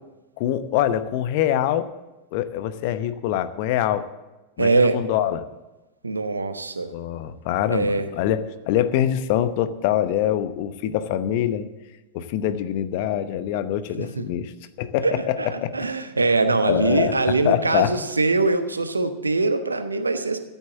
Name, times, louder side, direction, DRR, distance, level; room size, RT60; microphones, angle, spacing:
voice 1, 0.4-1.9 2.3-4.1 4.6-5.5 6.9-11.7 12.1-14.5 14.8-15.7 16.7-17.1 17.4-17.9, left 11 dB, 50° left, 12 dB, 0.9 m, -24 dB
voice 2, 4.6-5.0 6.0-6.9 7.7-8.1 14.0-14.2 15.0-15.1 15.4-20.4, right 3 dB, 80° right, 9 dB, 1.0 m, -22 dB
14.0 x 8.2 x 7.2 m, 1.1 s
figure-of-eight pair, 90°, 0 cm